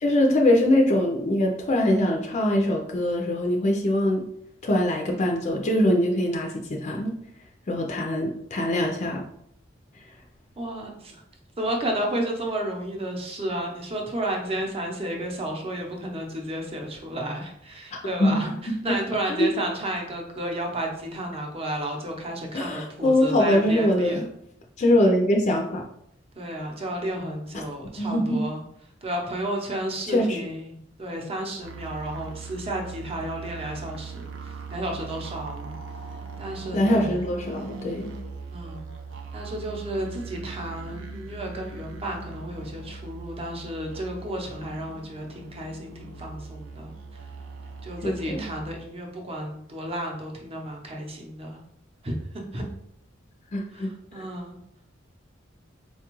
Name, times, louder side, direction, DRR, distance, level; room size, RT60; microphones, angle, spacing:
voice 1, 0.0-4.2 4.6-7.1 7.7-9.2 18.2-18.4 18.9-19.0 19.3-19.5 22.5-24.2 24.8-25.8 28.0-28.4 30.1-30.4 36.7-38.1 48.0-48.4 53.5-53.9, left 1 dB, 35° left, 1 dB, 0.4 m, -23 dB
voice 2, 10.6-11.2 11.6-24.3 26.3-28.6 29.0-37.2 38.5-38.9 39.3-47.2 47.8-51.6 52.0-52.1 52.5-52.6 53.7-54.6, right 1 dB, 30° right, 0 dB, 0.7 m, -32 dB
sound 1, 31.6-48.8, right 4 dB, 85° right, 0.4 m, -40 dB
4.3 x 2.3 x 3.0 m, 0.74 s
head